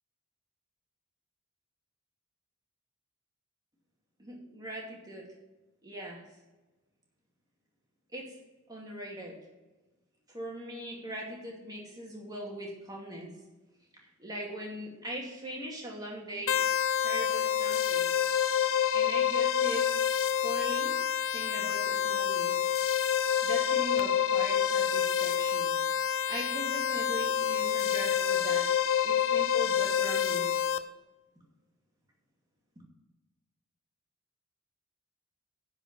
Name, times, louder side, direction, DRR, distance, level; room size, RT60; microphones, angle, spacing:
voice 1, 4.2-5.3 5.8-6.2 8.1-8.3 8.7-9.4 10.3-13.3 13.9-16.7 17.0-18.1 18.9-21.0 21.3-22.6 23.4-30.5, equal, 20° right, -2 dB, 2.5 m, -40 dB
sound 1, 16.5-30.8, left 9 dB, 65° left, 0.6 m, -28 dB
10.0 x 5.0 x 7.5 m, 1.1 s
head